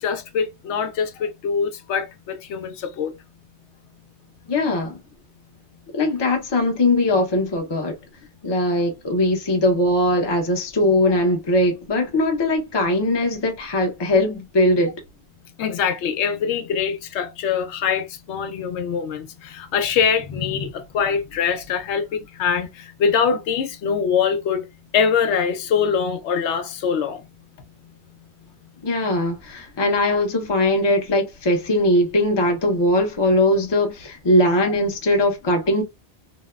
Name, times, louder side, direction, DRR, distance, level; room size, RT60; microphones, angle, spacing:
voice 1, 0.0-3.1 15.6-24.6 24.9-27.2 34.6-34.7, left 6 dB, 85° left, 0.9 m, -23 dB
voice 2, 4.5-5.0 5.9-7.9 8.4-15.0 28.8-35.8, left 1 dB, 30° left, 0.6 m, -20 dB
2.8 x 2.1 x 2.2 m
omnidirectional pair, 1.1 m